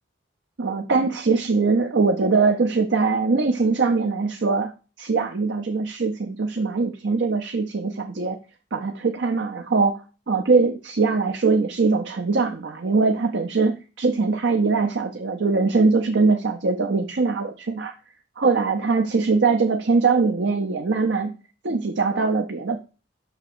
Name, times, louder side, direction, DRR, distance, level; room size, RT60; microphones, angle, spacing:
voice 1, 0.6-4.7 5.0-8.4 8.7-17.9 18.4-21.3 21.6-22.8, right 4 dB, 75° right, 4 dB, 0.7 m, -22 dB
5.9 x 3.5 x 6.0 m, 0.32 s
head